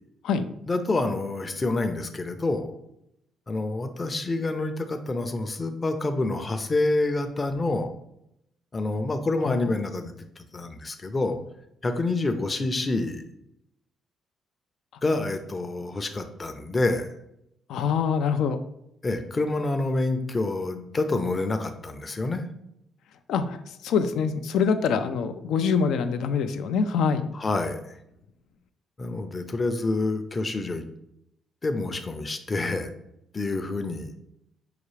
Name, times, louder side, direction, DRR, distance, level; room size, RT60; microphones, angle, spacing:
voice 1, 0.7-2.7 3.5-7.9 8.7-10.1 10.5-11.4 11.8-13.2 15.0-17.1 19.0-22.4 27.3-27.8 29.0-30.8 31.6-32.9 33.3-34.1, left 2 dB, 30° left, 7 dB, 0.5 m, -27 dB
voice 2, 17.7-18.6 23.3-23.6 23.8-27.3, left 6 dB, 80° left, 9 dB, 0.3 m, -24 dB
5.7 x 2.4 x 3.2 m, 0.80 s
cardioid pair, 90°, 0 cm